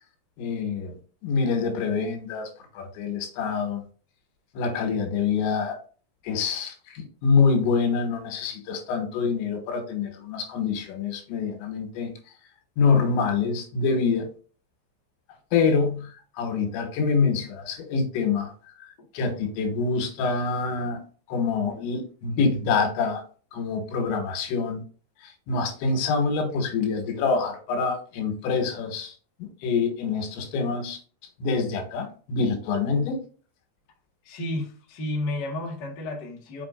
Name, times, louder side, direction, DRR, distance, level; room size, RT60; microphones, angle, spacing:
voice 1, 0.4-1.0 1.2-2.5 2.8-3.8 4.6-5.8 6.2-12.1 12.8-14.3 15.5-16.1 16.4-18.5 18.8-21.0 21.3-23.2 23.5-24.8 25.2-29.1 29.4-31.0 31.4-33.2, left 5 dB, 90° left, 3.7 m, -26 dB
voice 2, 34.2-36.6, left 1 dB, 50° left, 1.3 m, -32 dB
6.9 x 6.0 x 2.6 m
omnidirectional pair, 5.2 m